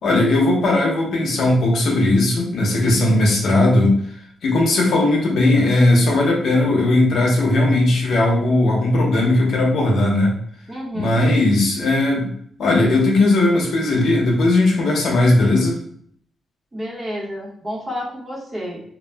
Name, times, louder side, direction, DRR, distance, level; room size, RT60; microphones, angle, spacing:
voice 1, 0.0-3.9 4.4-10.3 10.9-12.3 12.6-15.8, left 2 dB, 65° left, -1 dB, 0.7 m, -17 dB
voice 2, 10.7-11.2 16.7-18.8, equal, 20° right, -4 dB, 0.8 m, -30 dB
2.3 x 2.0 x 3.4 m, 0.63 s
wide cardioid pair, 160°, 0 cm